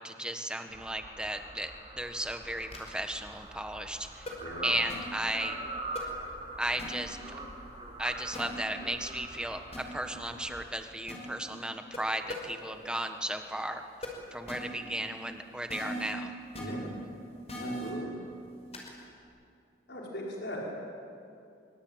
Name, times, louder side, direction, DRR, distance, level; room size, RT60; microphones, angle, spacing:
voice 1, 0.0-4.3 4.6-5.6 6.6-7.2 8.0-13.8 14.3-16.3, right 1 dB, 5° right, 6 dB, 1.5 m, -35 dB
sound 1, 0.7-10.7, right 2 dB, 30° right, 4.3 m, -43 dB
sound 2, 2.7-2.9 4.3-4.4 4.9-5.0 5.9-6.0 6.8-6.9 8.3-8.4 9.7-9.8 11.1-11.2 11.9-12.0 12.3-12.4 14.0-14.1 14.5-14.6 15.7-16.1 16.5-16.6 17.5-17.9 18.7-18.9, equal, 35° left, 5.2 m, -38 dB
voice 2, 4.4-4.7 16.6-16.9 17.5-18.1 19.9-20.6, left 1 dB, 65° left, -3 dB, 5.4 m, -39 dB
24.5 x 24.0 x 9.1 m, 2.5 s
head